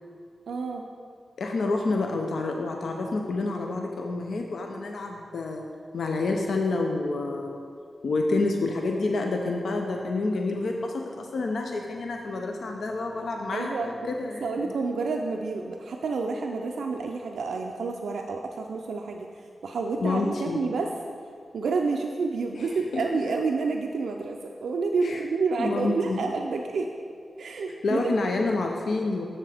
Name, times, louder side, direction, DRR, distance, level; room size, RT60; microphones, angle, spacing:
voice 1, 0.5-0.8 13.5-13.9 14.4-19.3 19.6-20.9 21.5-26.9 27.4-28.1, right 4 dB, 90° right, 2 dB, 0.4 m, -29 dB
voice 2, 1.4-5.7 5.9-7.6 8.0-14.7 20.0-20.6 22.5-22.7 25.0-25.2 25.6-26.2 27.8-29.3, left 3 dB, 80° left, 2 dB, 0.5 m, -28 dB
7.1 x 6.7 x 3.4 m, 2.3 s
cardioid pair, 70°, 0 cm